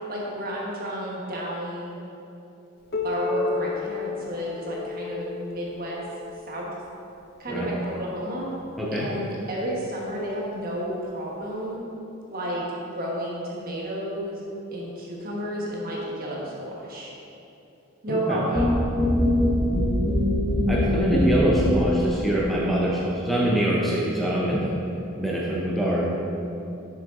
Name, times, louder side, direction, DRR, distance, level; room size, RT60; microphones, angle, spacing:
voice 1, 0.1-2.0 3.0-6.0 6.5-6.7 7.4-8.5 8.9-11.8 12.3-17.1 18.0-18.8, equal, 45° right, -4 dB, 1.3 m, -31 dB
Piano, 2.9-8.2 9.1-9.2 9.7-9.8 10.6-10.7 11.7-11.8, left 4 dB, 50° left, 0.6 m, -33 dB
voice 2, 8.8-9.1 18.1-18.4 20.7-24.7 25.2-26.1, right 1 dB, ahead, -5 dB, 0.7 m, -24 dB
sound 1, 18.5-22.1, left 1 dB, 20° left, 1.2 m, -22 dB
6.6 x 6.6 x 3.8 m, 2.8 s
head